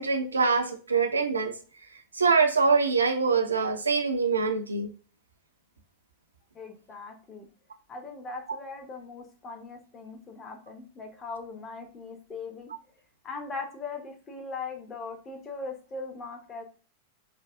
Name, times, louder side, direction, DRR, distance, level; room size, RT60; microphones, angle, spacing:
voice 1, 0.0-1.5 2.1-4.9, right 4 dB, 75° right, 0.5 m, -24 dB
voice 2, 6.5-7.5 7.9-12.7 13.2-16.6, left 4 dB, 25° left, 1.0 m, -40 dB
3.3 x 2.3 x 3.5 m
figure-of-eight pair, 90°, 0 cm